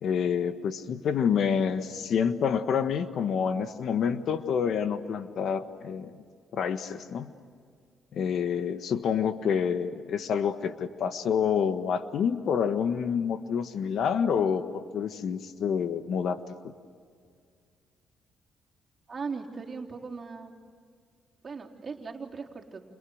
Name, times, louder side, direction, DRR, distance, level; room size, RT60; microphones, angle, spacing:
voice 1, 0.0-6.1 6.5-7.3 8.1-16.4, left 7 dB, 65° left, 10 dB, 1.4 m, -28 dB
voice 2, 19.1-20.5 21.4-22.8, right 4 dB, 35° right, 0 dB, 3.9 m, -38 dB
29.5 x 29.0 x 6.6 m, 2.1 s
cardioid pair, 90°, 0 cm